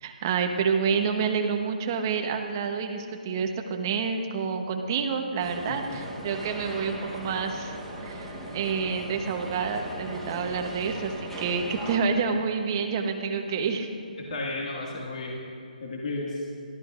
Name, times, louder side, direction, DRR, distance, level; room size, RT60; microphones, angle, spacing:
voice 1, 0.0-7.8 8.0-13.9, right 5 dB, 25° right, 4 dB, 0.9 m, -28 dB
sound 1, 5.4-12.0, right 1 dB, ahead, 1.0 m, -38 dB
voice 2, 14.2-15.4 15.8-16.5, left 2 dB, 55° left, -2 dB, 1.9 m, -33 dB
25.0 x 13.0 x 2.5 m, 2.6 s
hypercardioid pair, 170°, 5 cm